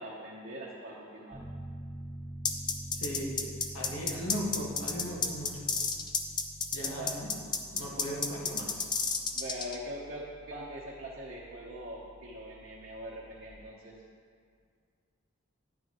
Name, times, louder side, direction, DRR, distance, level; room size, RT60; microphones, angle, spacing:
voice 1, 0.0-1.4 6.9-7.2 9.3-14.0, equal, 45° right, -5 dB, 0.9 m, -42 dB
Piano, 1.3-13.5, right 1 dB, ahead, 1.4 m, -47 dB
sound 1, 2.4-9.8, left 5 dB, 20° left, 0.4 m, -31 dB
voice 2, 2.9-3.5 3.7-5.6 6.7-7.4 7.7-8.9, equal, 65° left, -3 dB, 1.6 m, -37 dB
9.6 x 9.3 x 3.0 m, 2.1 s
head